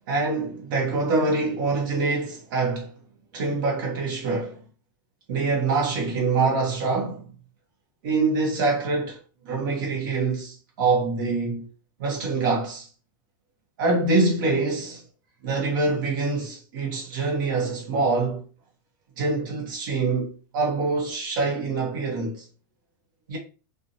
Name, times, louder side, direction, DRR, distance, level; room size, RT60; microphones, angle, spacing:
voice 1, 0.1-2.9 3.3-4.6 5.3-7.2 8.0-9.2 9.4-11.7 12.0-12.9 13.8-15.0 15.4-18.4 19.2-22.4 23.3-23.4, right 3 dB, 70° right, 0.8 m, -25 dB
2.5 x 2.1 x 2.6 m
supercardioid pair, 160°, 11 cm